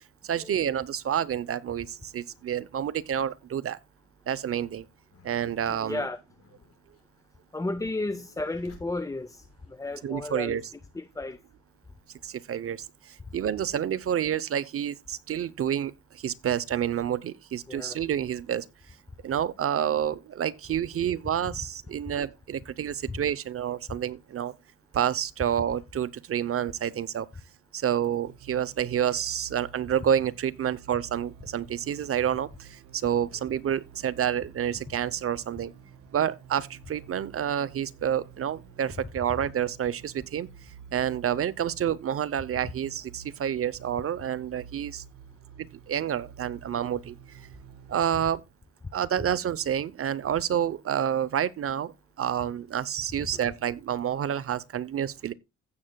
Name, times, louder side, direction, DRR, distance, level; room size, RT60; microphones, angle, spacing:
voice 1, 0.2-3.8 4.3-4.8 5.2-6.1 10.0-10.6 12.2-18.6 19.2-24.5 24.9-27.3 27.7-35.7 36.1-40.5 40.9-45.0 45.6-47.1 47.9-48.4 48.9-51.9 52.2-55.3, right 9 dB, 50° right, 0.7 m, -29 dB
sound 1, 5.1-10.0 10.7-11.6, left 3 dB, 55° left, 4.8 m, -58 dB
voice 2, 5.7-6.2 7.5-10.6 10.9-11.4 17.7-18.0 23.1-23.2 53.3-53.4, left 2 dB, 10° left, 0.5 m, -33 dB
sound 2, 28.2-48.1, right 7 dB, 85° right, 0.9 m, -50 dB
15.5 x 7.4 x 2.2 m
cardioid pair, 90°, 30 cm